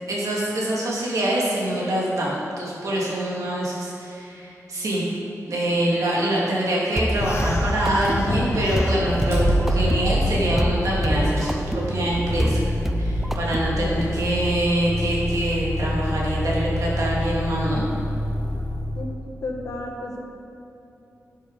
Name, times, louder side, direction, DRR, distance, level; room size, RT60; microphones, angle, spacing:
voice 1, 0.1-5.1 5.5-12.6 13.0-17.8, right 1 dB, 70° right, -5 dB, 2.3 m, -25 dB
sound 1, 7.0-14.1, equal, 5° right, 0.4 m, -27 dB
sound 2, 7.2-10.6, left 2 dB, 50° left, 0.8 m, -28 dB
Motor vehicle (road), 7.9-19.1, equal, 45° right, 2.0 m, -27 dB
voice 2, 19.4-20.3, left 2 dB, 75° left, -1 dB, 1.4 m, -33 dB
11.5 x 7.3 x 4.0 m, 2.9 s
wide cardioid pair, 150°, 6 cm